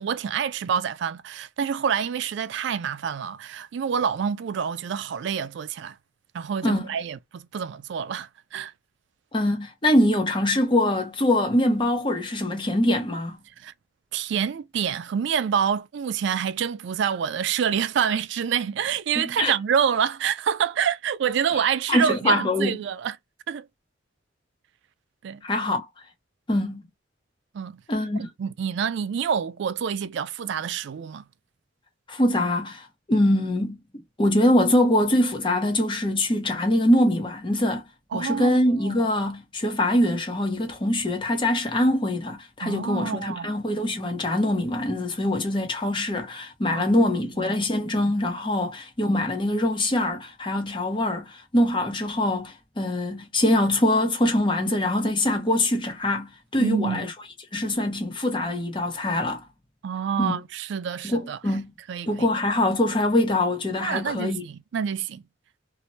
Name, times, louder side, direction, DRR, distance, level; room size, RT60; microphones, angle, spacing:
voice 1, 0.0-6.0 6.3-8.7 13.6-13.7 14.1-23.2 23.5-23.7 25.2-25.4 27.5-27.8 28.2-31.2 38.1-39.1 42.6-43.5 46.7-46.8 47.4-47.5 56.6-57.1 59.8-61.4 61.9-62.3 63.8-65.2, right 7 dB, 65° right, 0.3 m, -27 dB
voice 2, 9.3-13.4 19.2-19.5 21.9-22.8 25.4-25.9 26.5-26.9 27.9-28.2 32.1-33.8 34.2-37.9 38.1-57.1 57.5-59.4 60.2-60.3 61.0-61.7 62.1-64.4, left 1 dB, 25° left, 0.7 m, -23 dB
2.7 x 2.1 x 2.9 m
head